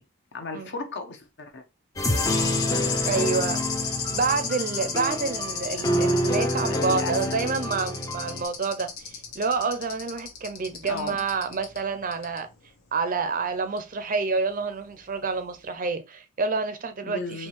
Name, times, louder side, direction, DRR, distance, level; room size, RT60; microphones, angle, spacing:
voice 1, 0.3-1.6 2.0-2.3 5.8-7.4 10.9-11.2 17.0-17.5, left 3 dB, 50° left, 0.8 m, -36 dB
sound 1, 2.0-8.4, equal, 15° left, 0.4 m, -28 dB
sound 2, 2.1-11.8 12.1-12.4 13.8-13.9, left 6 dB, 70° left, 1.1 m, -33 dB
voice 2, 3.0-3.6 4.1-12.5 12.9-17.5, right 4 dB, 40° right, 0.5 m, -28 dB
4.4 x 2.8 x 3.0 m
head